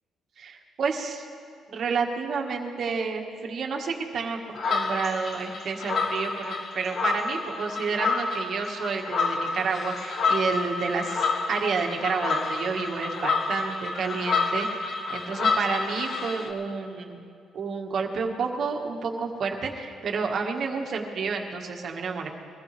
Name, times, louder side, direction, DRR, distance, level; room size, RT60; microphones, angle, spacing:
voice 1, 0.4-1.3 1.7-14.7 15.1-17.2 17.5-22.3, right 5 dB, 60° right, 2 dB, 1.8 m, -30 dB
sound 1, 4.5-16.5, left 4 dB, 55° left, 1.5 m, -29 dB
23.0 x 15.0 x 3.5 m, 2.3 s
cardioid pair, 90°, 0 cm